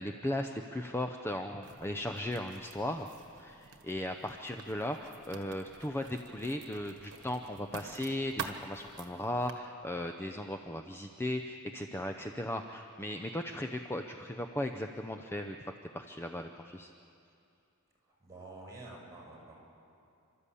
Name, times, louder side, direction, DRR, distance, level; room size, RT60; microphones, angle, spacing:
voice 1, 0.0-3.1 3.4-15.6 15.9-16.9, left 1 dB, 10° left, 5 dB, 0.6 m, -37 dB
Writing, 1.6-9.5, right 5 dB, 60° right, 1.5 m, -48 dB
voice 2, 18.0-19.5, right 2 dB, 15° right, -3 dB, 6.5 m, -49 dB
29.5 x 13.0 x 8.4 m, 2.6 s
head